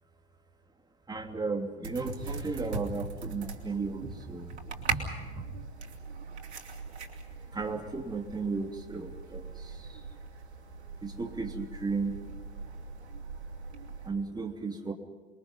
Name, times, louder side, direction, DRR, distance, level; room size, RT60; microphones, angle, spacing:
voice 1, 1.1-4.8 5.3-5.4 7.5-10.0 11.0-12.2 14.0-14.9, right 4 dB, 10° right, 3 dB, 2.9 m, -35 dB
sound 1, 1.8-14.1, right 4 dB, 75° right, 3.2 m, -40 dB
28.0 x 22.5 x 5.5 m, 1.3 s
figure-of-eight pair, 80°, 33 cm